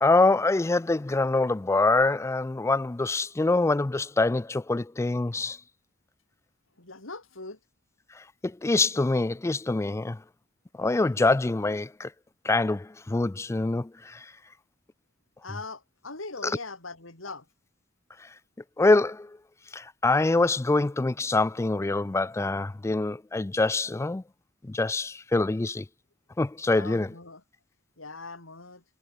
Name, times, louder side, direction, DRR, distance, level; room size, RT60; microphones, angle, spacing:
voice 1, 0.0-5.6 8.2-10.2 10.8-12.1 12.4-14.3 16.4-16.5 18.8-19.4 19.7-24.2 24.6-25.9 26.4-27.1, left 2 dB, 15° left, 0.3 m, -25 dB
voice 2, 6.8-7.6 15.4-17.5 26.7-27.4 28.0-28.8, left 3 dB, 85° left, 4.5 m, -41 dB
head